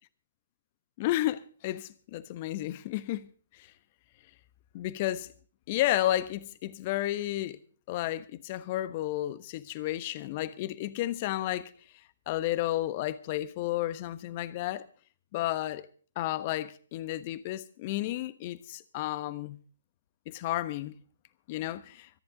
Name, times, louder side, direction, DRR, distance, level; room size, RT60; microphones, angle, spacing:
voice 1, 1.0-3.3 3.5-3.7 4.7-5.3 5.7-7.6 7.9-11.7 12.3-14.8 15.3-15.9 16.1-19.6 20.3-20.9 21.5-22.1, left 14 dB, 35° left, 1.2 m, -32 dB
25.0 x 11.0 x 3.9 m
figure-of-eight pair, 130°, 0 cm